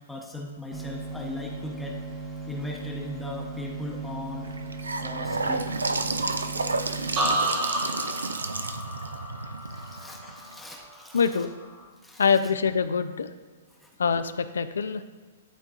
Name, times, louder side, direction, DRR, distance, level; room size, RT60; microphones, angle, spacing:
voice 1, 0.1-2.0 2.5-4.5 5.0-5.7 6.8-7.0 7.9-8.1 9.7-11.2 12.0-12.2 13.8-13.9, left 2 dB, 5° left, -1 dB, 0.8 m, -38 dB
sound 1, 0.7-7.3, right 4 dB, 15° right, 1.1 m, -37 dB
Gurgling / Sink (filling or washing) / Bathtub (filling or washing), 4.4-10.5, right 3 dB, 90° right, 0.4 m, -31 dB
sound 2, 7.2-11.0 11.3-11.8, right 1 dB, 40° right, 1.1 m, -31 dB
voice 2, 11.1-11.5 12.2-13.3 14.0-15.0, left 6 dB, 80° left, 11 dB, 0.4 m, -24 dB
11.0 x 3.8 x 2.4 m, 1.5 s
hypercardioid pair, 120°, 0 cm